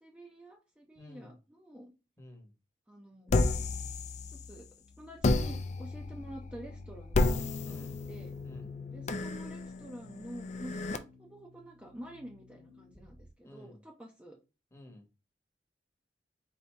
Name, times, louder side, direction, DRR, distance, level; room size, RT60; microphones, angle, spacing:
voice 1, 0.0-1.9 2.9-3.4 4.3-4.7 5.0-7.8 8.1-8.3 8.9-14.4, right 1 dB, 5° right, 0.6 m, -48 dB
voice 2, 0.9-1.3 2.2-2.5 7.6-8.0 8.4-8.7 13.4-13.8 14.7-15.1, left 1 dB, 15° left, 1.0 m, -51 dB
sound 1, 3.3-4.7 5.2-11.0, left 2 dB, 40° left, 0.4 m, -32 dB
sound 2, 5.4-13.3, left 1 dB, 60° left, 1.2 m, -56 dB
4.2 x 2.7 x 3.3 m
head